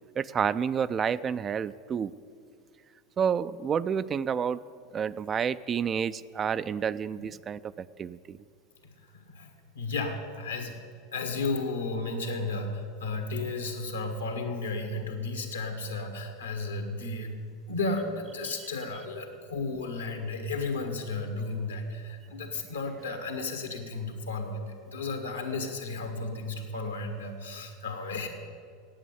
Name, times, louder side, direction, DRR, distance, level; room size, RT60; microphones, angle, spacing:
voice 1, 0.2-2.1 3.2-4.6 4.9-7.6 8.0-8.4, right 7 dB, 30° right, 15 dB, 0.3 m, -29 dB
voice 2, 9.1-9.5 9.8-10.8 11.1-28.3, left 3 dB, 80° left, 5 dB, 1.6 m, -33 dB
8.9 x 8.6 x 9.5 m, 2.2 s
figure-of-eight pair, 80°, 0 cm